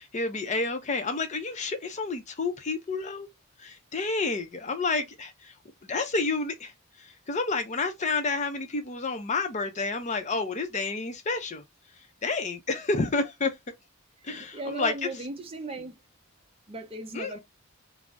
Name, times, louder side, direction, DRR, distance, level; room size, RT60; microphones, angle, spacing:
voice 1, 0.0-3.3 3.6-5.5 5.8-6.7 7.0-11.6 12.2-13.5 14.2-15.1 17.1-17.4, left 3 dB, 35° left, 0.5 m, -30 dB
voice 2, 14.2-16.0 16.7-17.4, right 2 dB, 25° right, 0.6 m, -37 dB
2.6 x 2.0 x 3.3 m
head